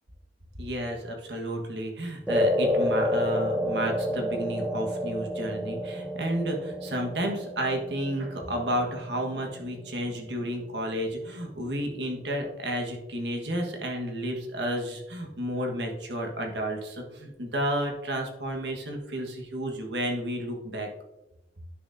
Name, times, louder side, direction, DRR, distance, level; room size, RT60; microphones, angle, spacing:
voice 1, 0.6-20.9, right 1 dB, 70° right, 2 dB, 1.5 m, -31 dB
sound 1, 2.3-10.8, left 1 dB, 5° right, 0.5 m, -30 dB
10.0 x 6.5 x 2.7 m, 0.96 s
head